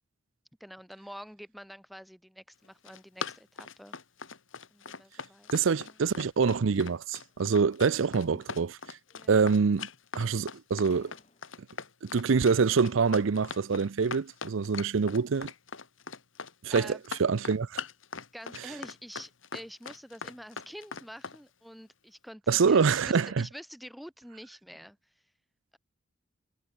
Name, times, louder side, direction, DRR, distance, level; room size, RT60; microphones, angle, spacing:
voice 1, 0.6-4.0 4.7-5.5 5.8-5.9 8.3-8.4 9.1-9.4 16.7-17.0 18.3-25.0, equal, ahead, 0.9 m, -47 dB
Run, 2.6-21.4, left 5 dB, 70° left, 2.8 m, -41 dB
voice 2, 5.5-9.0 9.3-9.9 10.1-11.1 12.0-15.5 16.6-17.8 22.5-23.5, right 5 dB, 75° right, 0.5 m, -25 dB
sound 1, 7.0-7.6 8.0-8.7 9.0-9.8 10.4-10.5 10.9-11.8, left 3 dB, 30° left, 3.1 m, -62 dB
head